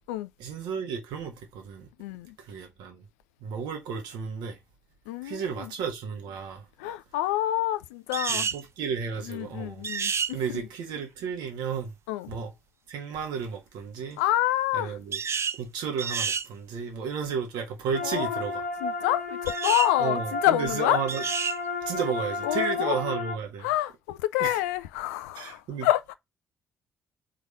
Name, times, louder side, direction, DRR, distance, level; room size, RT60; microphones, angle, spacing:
voice 1, 0.4-1.9 2.4-3.0 3.4-4.6 5.2-6.6 8.3-9.8 10.3-11.9 12.3-12.5 12.9-14.2 14.7-15.2 15.6-18.6 20.0-21.2 21.9-23.7 24.4-24.6 25.3-25.9, right 6 dB, 65° right, 1.5 m, -33 dB
voice 2, 2.0-2.3 5.1-5.7 6.8-8.5 9.2-10.6 12.1-12.3 14.2-15.0 18.0-18.4 18.8-21.0 22.4-23.0 23.6-26.1, left 14 dB, 70° left, 0.5 m, -27 dB
sound 1, 8.1-8.6 9.8-10.3 15.1-15.6 16.0-16.5 19.5-19.9 21.1-21.6, right 6 dB, 35° right, 0.4 m, -29 dB
sound 2, 17.9-23.4, left 3 dB, 90° left, 1.0 m, -33 dB
4.8 x 3.8 x 5.2 m
figure-of-eight pair, 45°, 8 cm